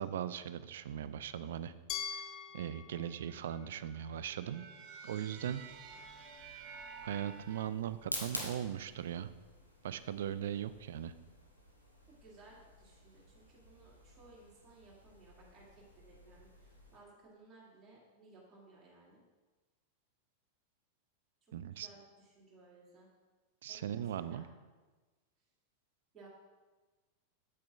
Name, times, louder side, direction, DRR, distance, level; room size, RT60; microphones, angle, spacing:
voice 1, 0.0-1.7 2.1-2.2 2.5-4.7 5.0-5.7 7.0-9.3 9.8-11.1 21.5-21.9 23.6-24.4, right 10 dB, 60° right, 14 dB, 0.3 m, -39 dB
Glass, 1.9-4.8, left 8 dB, 35° left, 0.6 m, -45 dB
sound 1, 3.1-7.6, right 5 dB, 40° right, 0.7 m, -52 dB
sound 2, 5.3-17.0, equal, 90° left, 1.2 m, -50 dB
voice 2, 12.1-19.2 21.7-23.1 23.7-24.5 26.1-26.3, right 2 dB, 20° right, -7 dB, 2.1 m, -60 dB
8.3 x 7.6 x 2.4 m, 1.3 s
figure-of-eight pair, 90°, 0 cm